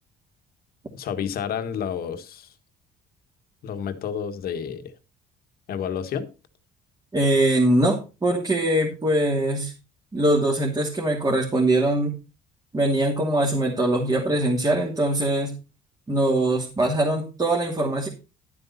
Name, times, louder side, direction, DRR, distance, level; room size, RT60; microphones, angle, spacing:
voice 1, 0.9-2.5 3.6-4.9 5.7-6.3, left 8 dB, 65° left, 9 dB, 1.6 m, -30 dB
voice 2, 7.1-9.7 10.1-12.2 12.7-15.6 16.1-18.1, right 1 dB, 20° right, -2 dB, 2.7 m, -22 dB
11.5 x 8.3 x 4.2 m, 0.31 s
cardioid pair, 110°, 17 cm